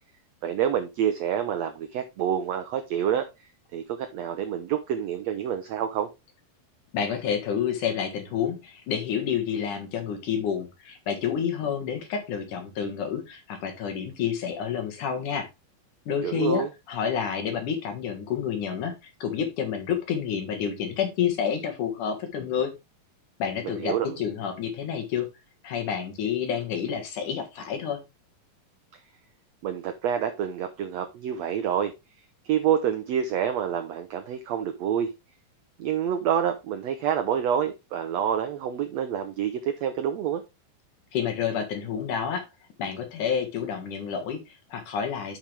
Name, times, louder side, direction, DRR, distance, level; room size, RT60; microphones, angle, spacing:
voice 1, 0.4-6.1 16.2-16.7 23.6-24.2 28.9-29.0 29.6-31.9 32.4-35.1 35.8-40.4, right 9 dB, 85° right, 8 dB, 1.5 m, -27 dB
voice 2, 6.9-15.5 16.1-19.0 19.2-22.7 23.4-25.3 25.6-28.0 41.1-42.5 42.8-45.4, left 7 dB, 65° left, 4 dB, 2.9 m, -29 dB
10.5 x 5.4 x 3.3 m, 0.24 s
omnidirectional pair, 4.1 m